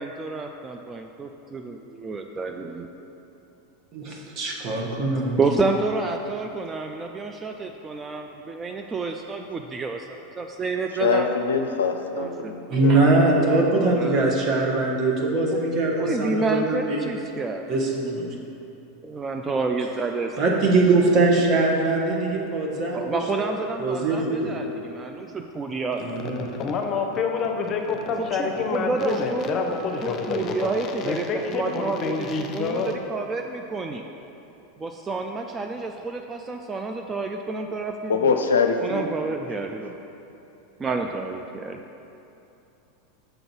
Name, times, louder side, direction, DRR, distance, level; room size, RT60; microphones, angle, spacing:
voice 1, 0.0-2.9 5.4-11.3 12.1-12.5 13.7-14.2 15.5-15.6 16.0-17.6 19.0-20.6 22.9-26.0 28.2-29.7 30.0-32.8 33.1-34.0 34.8-38.1 38.8-39.9 40.8-41.8, right 3 dB, 20° right, 4 dB, 0.4 m, -29 dB
voice 2, 3.9-5.6 12.7-17.1 17.7-18.3 20.4-23.5 23.8-24.5 26.0-26.5, right 2 dB, 40° right, -1 dB, 1.3 m, -22 dB
voice 3, 11.0-12.9 13.3-13.4 38.1-39.1, left 5 dB, 75° left, 5 dB, 0.5 m, -23 dB
voice 4, 26.4-32.9, left 4 dB, 40° left, 3 dB, 0.7 m, -27 dB
6.7 x 3.9 x 6.1 m, 2.8 s
hypercardioid pair, 90°, 0 cm